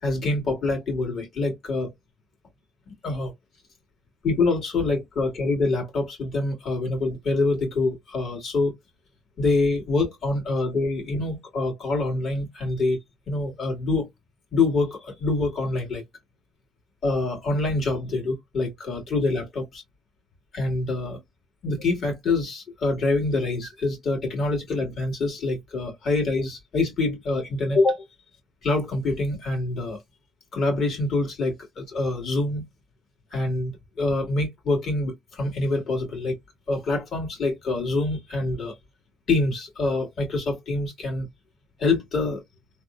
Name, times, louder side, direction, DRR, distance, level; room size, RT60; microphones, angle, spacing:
voice 1, 0.0-1.9 3.0-3.3 4.2-8.7 9.4-13.0 13.3-14.1 14.5-16.0 17.0-19.8 20.5-21.2 21.6-28.0 28.6-30.0 30.5-32.6 33.3-33.7 34.0-36.4 36.7-38.8 39.3-41.3 41.8-42.4, left 2 dB, 60° left, 1.9 m, -25 dB
3.4 x 2.0 x 2.5 m
cardioid pair, 90°, 0 cm